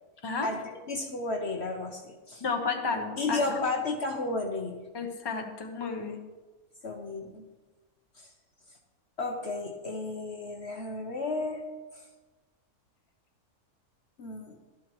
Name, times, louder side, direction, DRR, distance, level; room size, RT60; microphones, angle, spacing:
voice 1, 0.9-2.4 3.2-4.8 6.8-7.5 8.2-8.3 9.2-11.6 11.9-12.0 14.2-14.6, left 3 dB, 50° left, 3 dB, 1.0 m, -33 dB
voice 2, 2.4-3.6 4.9-6.2, left 4 dB, 20° left, 3 dB, 0.9 m, -32 dB
13.0 x 11.5 x 3.0 m, 1.2 s
omnidirectional pair, 1.6 m